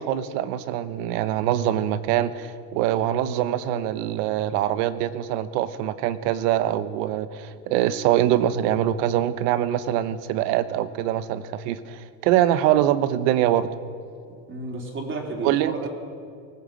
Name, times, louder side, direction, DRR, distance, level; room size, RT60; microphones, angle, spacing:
voice 1, 0.0-13.7 15.4-15.9, right 12 dB, 80° right, 12 dB, 1.2 m, -24 dB
voice 2, 14.5-15.9, right 2 dB, 25° right, 1 dB, 3.7 m, -32 dB
19.5 x 17.5 x 7.6 m, 2.3 s
supercardioid pair, 125°, 48 cm